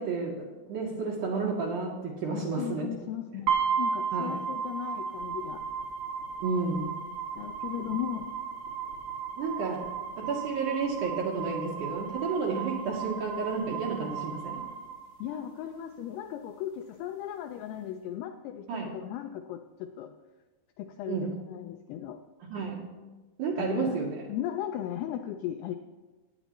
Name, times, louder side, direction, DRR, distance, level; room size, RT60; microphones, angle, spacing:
voice 1, 0.0-2.9 4.1-4.4 6.4-7.0 9.4-9.9 10.2-14.7 18.7-18.9 21.1-21.3 22.4-22.8 23.4-24.2, right 4 dB, 80° right, -1 dB, 1.8 m, -31 dB
voice 2, 2.3-5.6 7.4-8.3 15.2-20.1 20.8-22.2 23.6-24.0 24.3-25.7, left 11 dB, 90° left, 6 dB, 2.2 m, -36 dB
sound 1, 3.5-15.5, right 6 dB, 45° right, 2.1 m, -34 dB
18.5 x 9.1 x 3.0 m, 1.2 s
omnidirectional pair, 5.1 m